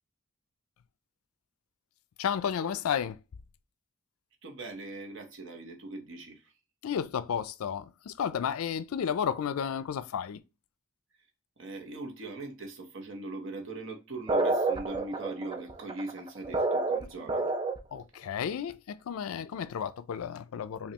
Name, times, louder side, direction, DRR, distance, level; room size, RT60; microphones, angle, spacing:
voice 1, 2.2-3.2 6.8-10.4 17.9-20.9, left 8 dB, 85° left, 0.4 m, -32 dB
voice 2, 4.4-6.5 11.6-17.5, right 2 dB, 60° right, 0.9 m, -41 dB
sound 1, 14.3-18.0, right 3 dB, 20° right, 0.4 m, -29 dB
5.2 x 2.3 x 2.9 m
head